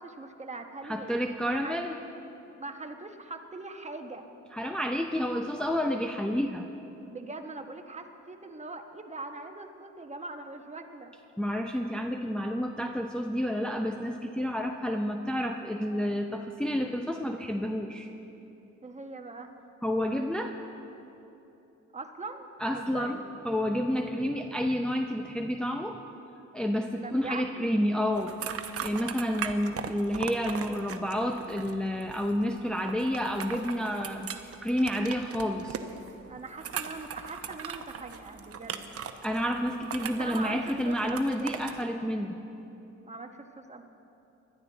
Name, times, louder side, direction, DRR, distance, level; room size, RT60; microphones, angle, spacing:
voice 1, 0.0-1.2 1.6-1.8 2.5-4.3 7.1-11.1 18.8-19.5 21.9-22.5 22.7-23.2 27.0-27.7 36.3-39.0 40.0-41.7 43.0-43.8, right 3 dB, 20° right, 5 dB, 1.1 m, -41 dB
voice 2, 0.8-2.0 4.5-6.7 11.4-18.1 19.8-20.5 22.6-26.0 26.5-35.8 39.2-42.4, equal, 5° left, 2 dB, 0.6 m, -30 dB
sound 1, 28.1-41.8, right 7 dB, 50° right, 0.9 m, -39 dB
20.5 x 12.0 x 4.0 m, 2.9 s
cardioid pair, 90°, 30 cm